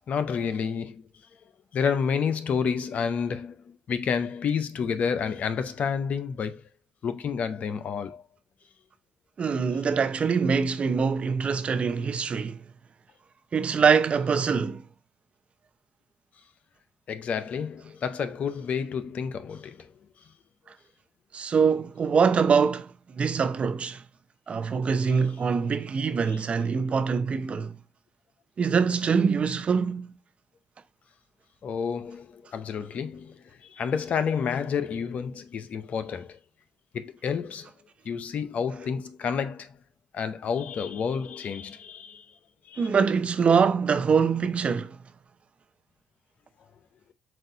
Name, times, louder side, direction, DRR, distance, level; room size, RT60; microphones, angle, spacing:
voice 1, 0.1-1.1 1.7-6.6 7.0-8.2 17.1-19.9 26.3-26.4 31.6-36.4 36.9-37.7 38.0-39.8 40.1-42.3 42.7-42.9, left 6 dB, 60° left, 0.6 m, -30 dB
voice 2, 9.4-12.6 13.5-14.8 21.3-24.0 24.5-27.8 28.6-30.2 42.8-45.0, right 6 dB, 50° right, 0.7 m, -24 dB
7.6 x 2.5 x 2.6 m
supercardioid pair, 55°, 3 cm